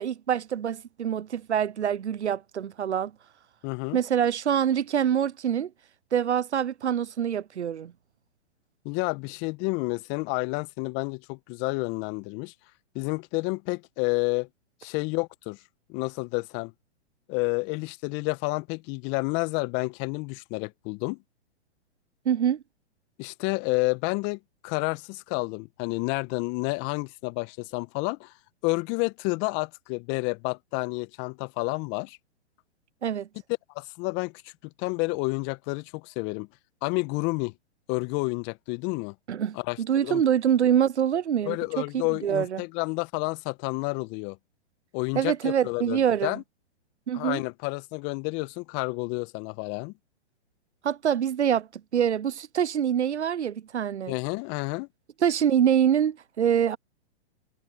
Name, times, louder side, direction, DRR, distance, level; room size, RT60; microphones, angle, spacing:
voice 1, 0.0-3.1 3.9-5.7 6.1-7.9 22.3-22.6 33.0-33.3 39.3-41.8 42.2-42.6 45.1-46.4 47.1-47.4 50.8-51.7 51.9-54.1 55.2-56.8, right 9 dB, 85° right, 0.7 m, -25 dB
voice 2, 3.6-4.0 8.8-12.5 12.9-14.5 14.8-15.6 15.9-16.7 17.3-21.2 23.2-28.3 28.6-32.2 33.7-34.3 34.8-36.5 36.8-37.5 37.9-39.1 39.5-40.2 41.4-44.4 44.9-46.4 47.1-49.9 54.1-54.9, left 28 dB, 35° left, 1.4 m, -30 dB
hypercardioid pair, 120°, 33 cm